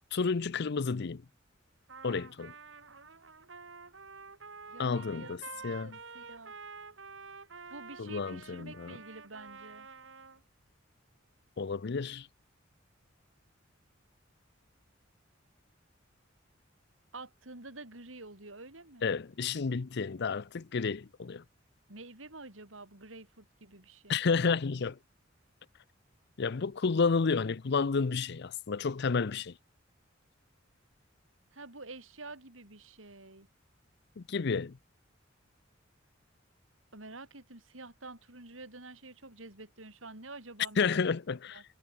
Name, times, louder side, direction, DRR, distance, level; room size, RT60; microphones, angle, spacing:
voice 1, 0.1-1.2 2.0-2.5 4.8-6.0 8.0-9.0 11.6-12.3 19.0-21.4 24.1-25.0 26.4-29.5 34.2-34.8 40.8-41.6, left 5 dB, 60° left, 0.6 m, -31 dB
Trumpet, 1.9-10.4, right 4 dB, 70° right, 2.5 m, -49 dB
voice 2, 4.7-6.6 7.7-9.9 17.1-19.1 21.9-24.2 31.5-33.5 36.9-41.0 41.5-41.6, right 2 dB, 90° right, 5.8 m, -48 dB
head